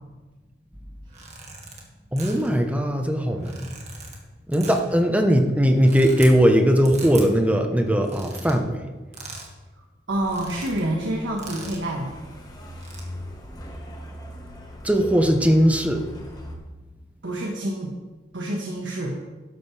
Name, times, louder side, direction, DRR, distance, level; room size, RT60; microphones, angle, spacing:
sound 1, 1.0-1.8 2.2-2.6 3.3-4.2 4.5-5.0 5.6-6.3 6.8-7.3 7.9-8.6 9.1-9.5 9.8-9.9 10.2-10.8 11.4-11.9 12.6-13.0, right 3 dB, 40° right, 2.0 m, -40 dB
voice 1, 2.1-3.7 4.5-8.8 14.8-16.0, equal, 10° right, 4 dB, 1.0 m, -19 dB
Truck, 10.1-16.6, equal, 20° left, 1.5 m, -41 dB
voice 2, 10.1-12.1 17.2-17.9 18.3-19.2, right 1 dB, 80° right, -1 dB, 1.6 m, -27 dB
12.5 x 11.5 x 3.4 m, 1.2 s
head